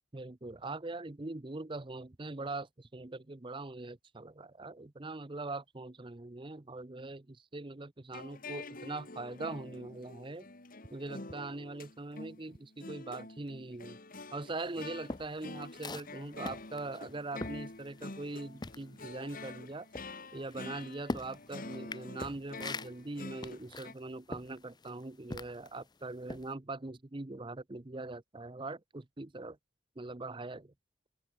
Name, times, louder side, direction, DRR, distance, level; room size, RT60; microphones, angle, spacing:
voice 1, 0.1-10.5 10.9-14.0 14.3-19.9 20.3-29.6 30.0-30.7, right 2 dB, 25° right, 0.7 m, -42 dB
sound 1, 8.1-23.9, left 3 dB, 45° left, 1.9 m, -47 dB
sound 2, 14.6-18.3 18.6-25.8 26.2-26.5, left 2 dB, 20° left, 0.6 m, -43 dB
head